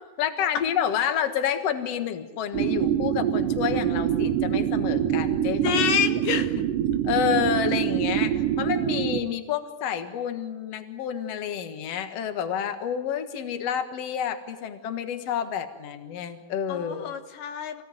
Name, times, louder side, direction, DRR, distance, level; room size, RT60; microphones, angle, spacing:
voice 1, 0.2-5.8 7.1-8.3 8.6-17.1, left 8 dB, 55° left, 8 dB, 2.4 m, -29 dB
sound 1, 2.5-9.2, right 10 dB, 85° right, 2.7 m, -25 dB
voice 2, 5.6-6.7 16.7-17.8, left 8 dB, 90° left, 7 dB, 3.0 m, -27 dB
27.5 x 17.0 x 9.4 m, 1.3 s
omnidirectional pair, 3.7 m